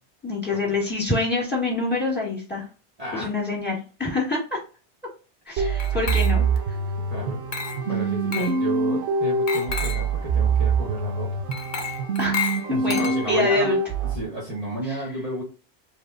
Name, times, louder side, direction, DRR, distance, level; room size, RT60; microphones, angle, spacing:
voice 1, 0.2-2.6 3.1-4.6 5.5-6.5 8.3-8.5 12.2-12.4 12.7-13.8 14.9-15.0, left 2 dB, 10° left, -3 dB, 2.3 m, -26 dB
voice 2, 3.0-3.3 7.1-7.4 7.8-11.3 12.7-13.8 14.0-15.4, right 2 dB, 35° right, -5 dB, 1.3 m, -32 dB
sound 1, 5.6-14.2, right 4 dB, 80° right, 1.0 m, -24 dB
Glass, 5.8-6.6 7.5-7.9 8.3-8.6 9.5-10.1 11.5-13.5, left 7 dB, 50° left, 0.8 m, -31 dB
4.7 x 3.8 x 2.6 m, 0.35 s
omnidirectional pair, 1.2 m